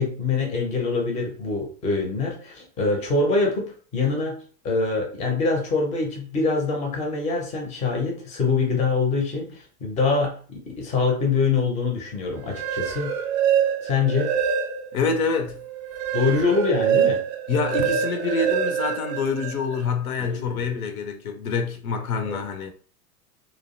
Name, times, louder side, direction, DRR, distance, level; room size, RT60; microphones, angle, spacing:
voice 1, 0.0-3.6 3.9-4.4 4.6-13.1 13.8-14.3 16.1-17.2 20.2-20.8 22.3-22.4, left 4 dB, 15° left, 0.5 m, -24 dB
sound 1, 12.4-15.1 15.5-19.8, right 8 dB, 40° right, 0.5 m, -25 dB
voice 2, 14.9-15.6 17.5-22.7, left 5 dB, 65° left, 0.6 m, -26 dB
2.4 x 2.0 x 2.5 m
figure-of-eight pair, 85°, 46 cm